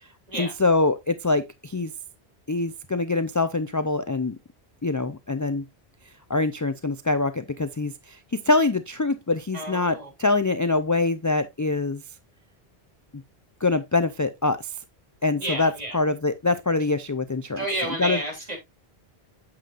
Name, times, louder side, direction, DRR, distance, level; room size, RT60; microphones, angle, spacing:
voice 1, 0.3-1.9 2.5-4.4 4.8-5.7 6.3-8.2 8.5-12.0 13.1-13.2 13.6-14.7 15.2-17.6 18.0-18.2, left 3 dB, 30° left, 0.4 m, -24 dB
voice 2, 9.5-10.3 15.4-16.0 17.6-18.6, right 1 dB, 40° right, 3.5 m, -31 dB
8.7 x 7.7 x 2.5 m
omnidirectional pair, 1.1 m